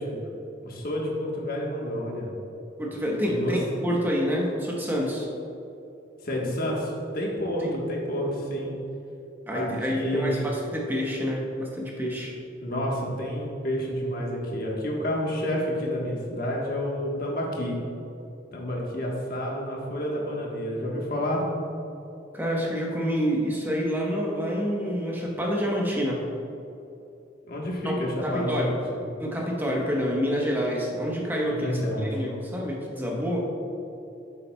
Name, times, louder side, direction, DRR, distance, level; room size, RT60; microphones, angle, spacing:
voice 1, 0.6-2.3 3.3-3.6 6.2-8.7 9.5-10.4 12.6-17.8 18.5-21.4 27.4-28.8 31.5-32.1, equal, 50° left, -2 dB, 1.3 m, -29 dB
voice 2, 2.8-5.3 7.6-7.8 9.5-12.3 22.3-26.3 27.8-28.7 29.2-33.4, equal, 10° right, -2 dB, 1.0 m, -28 dB
8.8 x 7.0 x 2.3 m, 2.8 s
head